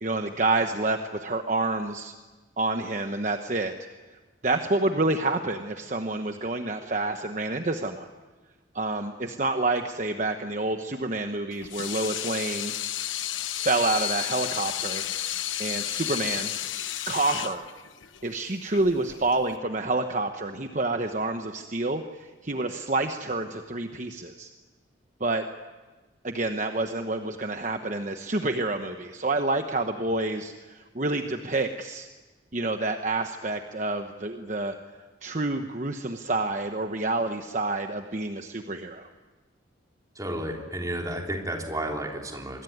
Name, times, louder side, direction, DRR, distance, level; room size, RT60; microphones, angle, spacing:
voice 1, 0.0-2.1 2.6-3.7 4.4-8.1 8.7-12.8 13.5-16.5 17.1-17.7 18.2-24.5 25.2-25.4 26.2-32.1 32.5-34.8 35.2-39.1, right 2 dB, 40° right, 6 dB, 1.1 m, -28 dB
Water tap faucet / Sink (filling or washing), 11.5-19.6, left 12 dB, 80° left, 1.0 m, -32 dB
voice 2, 40.1-42.6, right 1 dB, 20° right, 1 dB, 3.4 m, -32 dB
26.5 x 21.5 x 9.5 m, 1.3 s
head